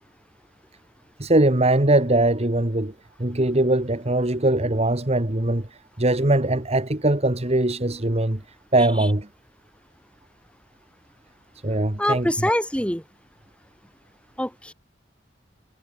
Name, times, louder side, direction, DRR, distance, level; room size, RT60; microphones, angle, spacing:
voice 1, 1.2-2.9 3.2-5.7 6.0-8.4 8.7-9.3 11.6-12.5, right 1 dB, 35° right, 1.9 m, -21 dB
voice 2, 12.0-13.0 14.4-14.7, left 1 dB, 5° left, 6.0 m, -24 dB
head